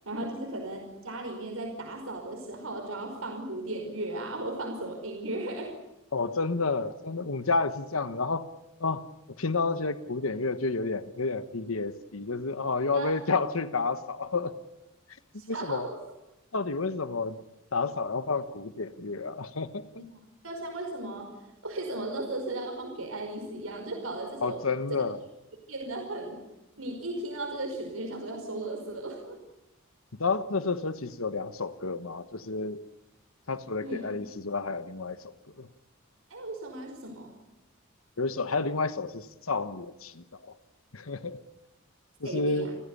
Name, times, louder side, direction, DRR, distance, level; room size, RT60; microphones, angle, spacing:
voice 1, 0.1-5.7 12.9-13.1 15.4-16.0 20.1-20.2 20.4-21.3 21.6-24.6 24.9-25.0 25.7-26.4 26.8-29.4 33.8-34.1 36.3-37.3 42.2-42.8, right 2 dB, 90° right, 2 dB, 5.4 m, -36 dB
voice 2, 6.1-8.4 8.8-9.1 9.4-14.6 15.5-15.9 16.5-17.4 17.7-20.1 24.4-25.2 30.2-32.8 33.5-35.7 38.2-40.5 40.9-41.4 42.2-42.7, left 3 dB, 90° left, 12 dB, 1.3 m, -30 dB
29.5 x 16.0 x 9.8 m, 0.93 s
head